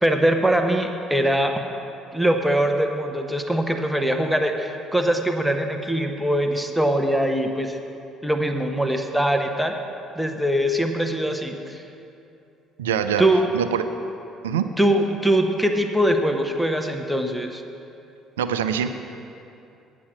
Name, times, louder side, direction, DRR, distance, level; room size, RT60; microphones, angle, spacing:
voice 1, 0.0-1.5 2.1-7.8 8.2-9.7 10.2-11.8 13.2-13.5 14.8-17.6, right 1 dB, 5° right, 4 dB, 1.0 m, -22 dB
voice 2, 12.8-13.2 13.5-13.9 14.4-14.7 18.4-18.9, right 8 dB, 85° right, 9 dB, 0.4 m, -24 dB
8.6 x 8.4 x 6.1 m, 2.6 s
hypercardioid pair, 55°, 0 cm